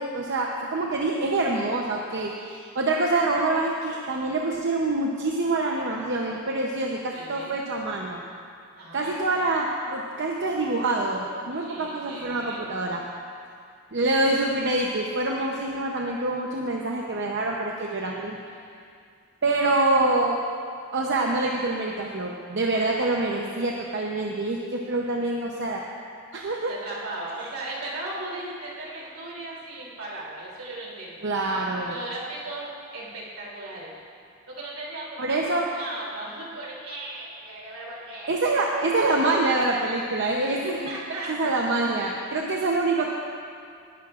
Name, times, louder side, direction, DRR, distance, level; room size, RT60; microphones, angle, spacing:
voice 1, 0.0-8.2 8.9-13.0 13.9-18.4 19.4-20.4 20.9-25.8 26.3-26.7 27.4-27.5 31.2-31.9 35.2-35.7 38.3-40.9 41.3-43.1, right 2 dB, 55° right, -1 dB, 0.8 m, -26 dB
voice 2, 7.1-7.6 8.8-9.5 11.6-12.6 26.7-31.3 31.8-33.9 34.5-38.4 40.4-41.6 42.5-42.7, right 2 dB, 75° right, -5 dB, 3.0 m, -37 dB
19.5 x 12.0 x 2.5 m, 2.4 s
head